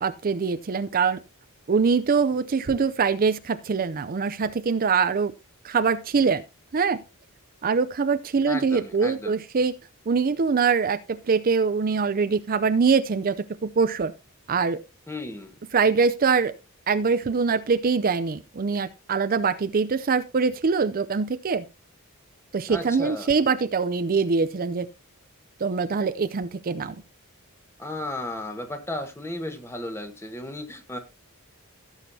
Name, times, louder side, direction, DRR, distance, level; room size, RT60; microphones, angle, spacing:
voice 1, 0.0-1.2 1.7-5.3 5.6-6.4 6.7-7.0 7.6-9.7 10.1-14.1 14.5-14.8 15.7-16.5 16.9-21.6 22.5-24.9 25.6-27.0, right 5 dB, 40° right, 0.5 m, -23 dB
voice 2, 8.4-9.4 15.1-15.5 22.7-23.3 27.8-31.0, left 1 dB, 10° left, 1.4 m, -34 dB
16.0 x 7.3 x 2.7 m
head